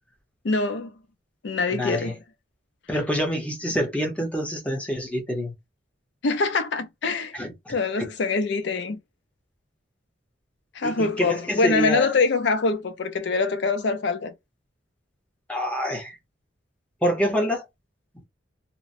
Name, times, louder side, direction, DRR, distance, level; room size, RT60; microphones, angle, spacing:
voice 1, 0.4-0.9 1.4-2.1 6.2-7.3 7.7-9.0 10.7-14.3, left 4 dB, 65° left, 0.5 m, -24 dB
voice 2, 1.7-2.1 2.9-5.5 7.3-7.7 10.8-12.1 15.5-16.2 17.0-17.6, equal, 5° left, 0.7 m, -26 dB
2.9 x 2.0 x 2.5 m
head